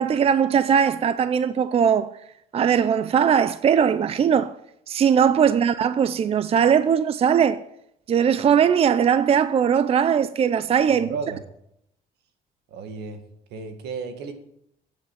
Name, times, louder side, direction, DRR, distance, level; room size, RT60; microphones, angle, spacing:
voice 1, 0.0-2.1 2.5-4.5 4.9-7.6 8.1-11.1, right 8 dB, 35° right, 0.5 m, -20 dB
voice 2, 11.0-11.4 12.7-13.2 13.5-14.3, right 5 dB, 80° right, 2.0 m, -33 dB
11.5 x 7.8 x 9.0 m
cardioid pair, 110°, 17 cm